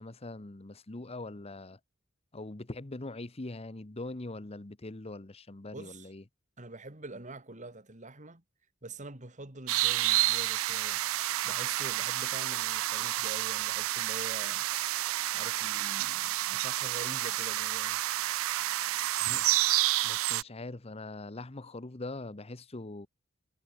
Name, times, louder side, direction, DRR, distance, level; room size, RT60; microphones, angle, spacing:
voice 1, 0.0-1.8 2.3-6.2 19.2-19.5 20.0-23.1, left 2 dB, 30° left, 1.0 m, -42 dB
voice 2, 5.7-6.1 6.6-8.4 8.8-11.0 11.4-14.7 15.3-18.0, right 2 dB, 35° right, 2.8 m, -45 dB
sound 1, 9.7-20.4, right 15 dB, 90° right, 0.4 m, -30 dB
head